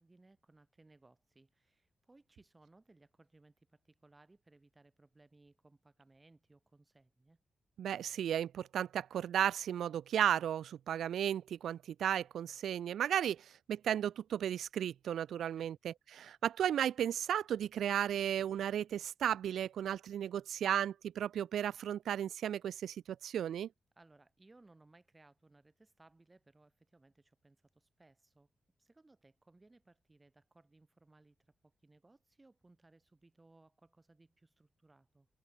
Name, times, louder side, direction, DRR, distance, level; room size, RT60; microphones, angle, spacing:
voice 1, 0.0-7.4 15.4-15.7 24.0-28.5 28.8-35.3, right 2 dB, 15° right, 4.6 m, -65 dB
voice 2, 7.8-23.7, right 10 dB, 90° right, 0.3 m, -34 dB
wide cardioid pair, 140°, 0 cm